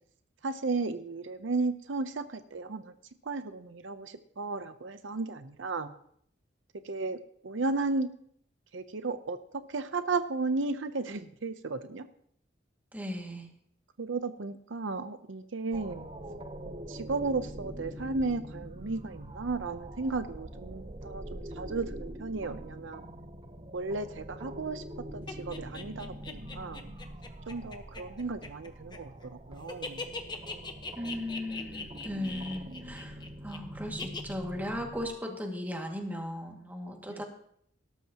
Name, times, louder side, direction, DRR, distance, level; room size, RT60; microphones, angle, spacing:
voice 1, 0.4-2.9 3.2-5.9 6.8-7.2 7.4-8.1 8.7-12.1 14.0-16.1 16.7-23.0 23.7-24.8 25.1-26.9 27.5-30.1 37.1-37.2, right 3 dB, 80° right, 10 dB, 0.7 m, -34 dB
voice 2, 12.9-13.5 31.0-37.2, left 1 dB, 10° right, 1 dB, 2.1 m, -37 dB
sound 1, 15.7-35.1, right 1 dB, 30° right, 0.8 m, -44 dB
sound 2, 25.3-29.3 29.5-33.6 34.0-34.3, left 4 dB, 25° left, 1.1 m, -40 dB
18.0 x 13.0 x 2.9 m, 0.67 s
head